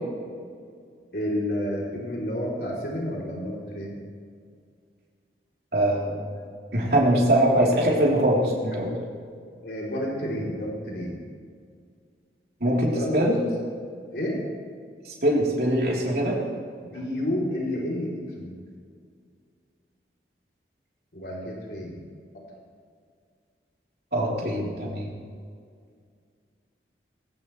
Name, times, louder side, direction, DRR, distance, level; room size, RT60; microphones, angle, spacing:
voice 1, 1.1-4.0 9.6-11.2 12.7-13.5 14.1-14.4 16.8-18.6 21.1-22.0, left 1 dB, 65° left, -3 dB, 3.5 m, -30 dB
voice 2, 5.7-6.3 6.7-8.9 12.6-13.4 15.1-16.4 24.1-25.1, right 1 dB, 55° right, -4 dB, 3.8 m, -22 dB
20.0 x 17.0 x 3.3 m, 2.2 s
head